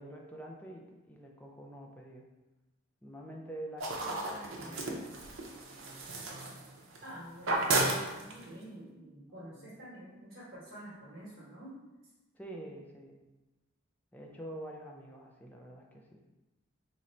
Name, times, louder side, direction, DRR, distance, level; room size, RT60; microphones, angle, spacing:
voice 1, 0.0-2.2 3.0-4.2 4.5-5.2 9.5-9.8 12.4-13.2 14.1-16.2, right 1 dB, 10° left, 0 dB, 0.4 m, -46 dB
sound 1, 3.8-7.1 7.4-8.6, right 2 dB, 75° right, 0.6 m, -33 dB
voice 2, 4.0-5.0 7.0-11.8, right 1 dB, 50° right, -9 dB, 1.1 m, -49 dB
3.1 x 2.5 x 4.2 m, 1.1 s
head